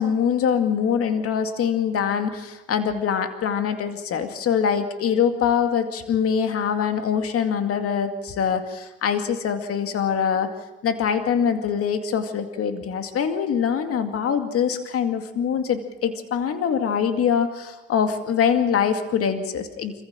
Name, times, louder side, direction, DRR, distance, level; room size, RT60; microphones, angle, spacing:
voice 1, 0.0-10.5 10.8-19.9, left 7 dB, 50° left, 7 dB, 2.3 m, -23 dB
26.5 x 15.0 x 7.4 m, 1.1 s
supercardioid pair, 80°, 30 cm